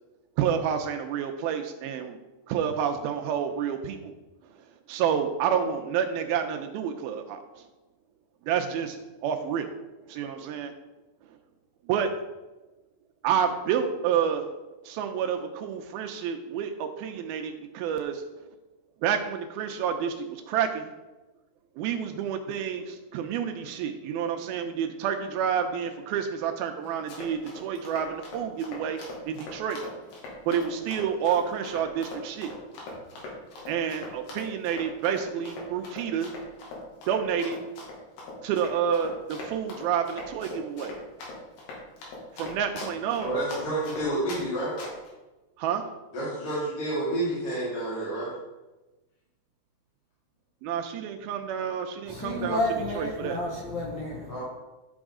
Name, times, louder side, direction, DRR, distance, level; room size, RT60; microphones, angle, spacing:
voice 1, 0.4-2.2 2.5-4.1 4.9-7.7 8.5-9.7 10.1-10.7 11.9-12.1 13.2-14.5 14.8-18.2 19.0-20.9 21.8-29.0 29.3-29.8 30.5-32.5 32.9-33.3 33.7-36.3 37.1-37.6 38.4-41.0 42.3-43.4 45.6-45.8 50.6-52.6 52.9-53.4, right 8 dB, 80° right, 5 dB, 2.3 m, -29 dB
Run, 26.9-44.4 44.8-45.1, left 3 dB, 75° left, 4.0 m, -41 dB
voice 2, 43.2-44.7 46.1-48.3 54.3-54.4, right 1 dB, 40° left, -10 dB, 3.4 m, -29 dB
voice 3, 52.1-54.3, left 1 dB, 55° left, -3 dB, 2.2 m, -30 dB
11.5 x 6.2 x 3.7 m, 1.1 s
omnidirectional pair, 4.8 m